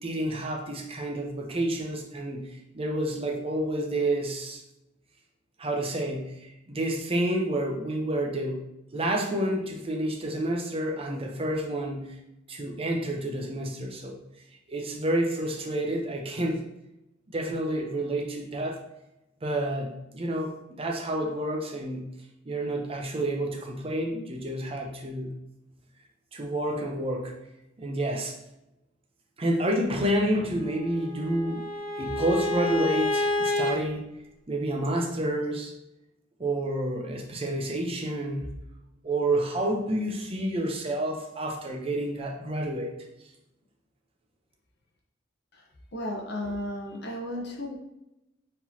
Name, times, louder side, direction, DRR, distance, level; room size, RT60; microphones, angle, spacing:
voice 1, 0.0-4.6 5.6-8.6 8.9-12.2 12.5-14.2 14.7-16.6 17.3-18.8 19.4-22.0 22.5-25.3 26.3-27.3 27.8-28.4 29.4-31.6 32.0-34.0 34.5-35.7 36.4-38.6 39.0-42.9, right 1 dB, 30° right, 1 dB, 0.7 m, -29 dB
Bowed string instrument, 30.6-33.7, left 1 dB, 65° right, 1.2 m, -29 dB
voice 2, 45.9-47.8, left 1 dB, 60° left, -2 dB, 0.9 m, -34 dB
4.7 x 3.7 x 2.8 m, 0.91 s
head